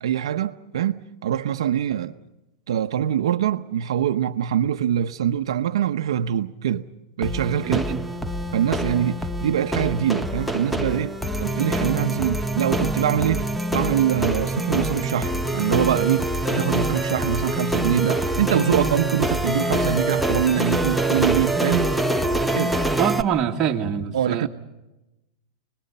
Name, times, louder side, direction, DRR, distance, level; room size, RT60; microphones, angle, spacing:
voice 1, 0.0-2.1 2.7-6.9 7.2-7.8 8.5-21.9 22.5-22.8 24.1-24.5, right 10 dB, 75° right, 0.9 m, -24 dB
sound 1, 7.2-23.2, right 1 dB, ahead, 0.8 m, -25 dB
voice 2, 7.6-8.0 23.0-24.5, right 8 dB, 20° right, 1.9 m, -24 dB
29.5 x 20.5 x 5.5 m
supercardioid pair, 160°, 3 cm